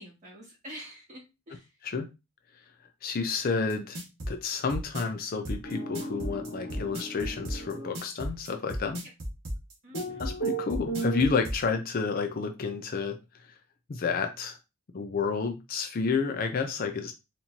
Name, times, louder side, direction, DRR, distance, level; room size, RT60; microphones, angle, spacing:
voice 1, 0.0-1.7 9.8-10.2, equal, 35° right, -3 dB, 2.0 m, -47 dB
voice 2, 3.0-4.0 4.3-9.0 10.2-13.6 13.9-14.6 14.9-17.1, left 5 dB, 40° left, 5 dB, 0.4 m, -30 dB
sound 1, 3.7-11.6, equal, 80° right, 1.3 m, -35 dB
sound 2, 5.6-7.9 9.9-11.2, right 3 dB, 65° left, 1.1 m, -35 dB
4.4 x 2.6 x 2.8 m, 0.25 s
head